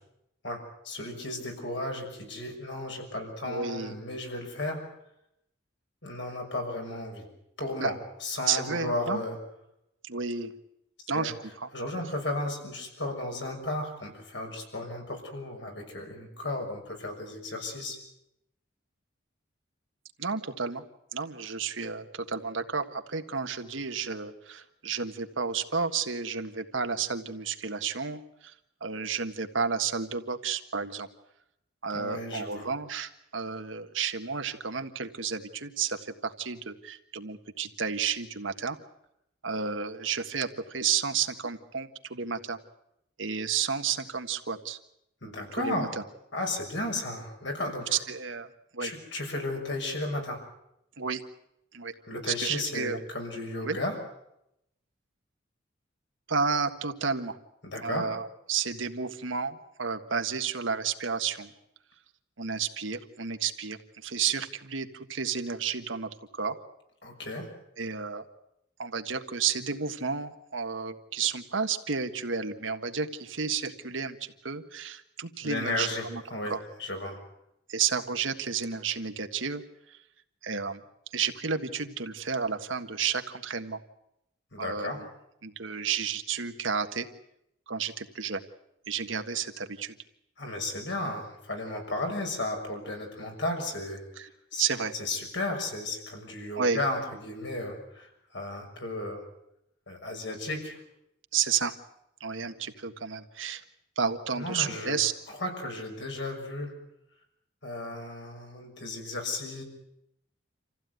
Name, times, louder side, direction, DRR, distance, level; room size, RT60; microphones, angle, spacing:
voice 1, 0.4-4.8 6.0-7.2 7.6-9.4 11.1-11.3 11.7-18.0 31.9-32.7 45.2-45.9 46.3-48.0 48.8-50.4 52.1-53.9 57.6-58.1 67.0-67.5 75.4-76.5 76.8-77.2 84.5-85.0 90.4-94.0 94.5-94.7 94.9-99.2 99.9-100.8 104.3-105.0 105.3-106.7 107.6-109.6, left 2 dB, 70° left, 2 dB, 6.3 m, -34 dB
voice 2, 3.4-3.9 7.8-7.9 8.5-9.2 10.0-10.5 11.1-11.7 20.2-20.8 21.1-28.5 28.8-31.1 31.8-38.8 39.4-42.6 43.2-44.8 45.5-45.9 47.9-48.9 51.0-51.2 51.7-51.9 52.3-53.0 53.6-53.8 56.3-57.4 57.8-61.5 62.4-66.6 67.8-68.2 68.8-76.2 76.5-76.6 77.7-79.6 79.9-80.0 80.4-80.8 81.1-83.8 84.6-85.1 85.4-87.1 87.7-88.4 88.9-90.0 94.2-94.3 94.6-94.9 96.6-96.8 101.3-101.7 102.2-103.6 103.9-105.1, right 6 dB, 90° right, 7 dB, 1.6 m, -31 dB
27.0 x 15.5 x 9.4 m, 0.81 s
head